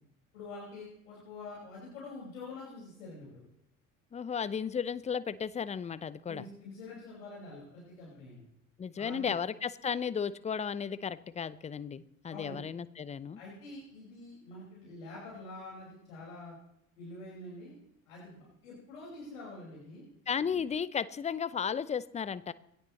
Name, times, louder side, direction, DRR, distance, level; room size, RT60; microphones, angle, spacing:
voice 1, 0.3-3.4 6.3-8.4 9.0-9.3 12.3-12.6 13.4-16.6 17.0-17.7 18.1-20.0 20.5-20.6, left 2 dB, 70° left, -5 dB, 5.6 m, -46 dB
voice 2, 4.1-6.4 8.8-13.4 20.3-22.5, left 7 dB, 15° left, 17 dB, 0.6 m, -34 dB
22.0 x 17.0 x 3.2 m, 0.80 s
figure-of-eight pair, 60°, 42 cm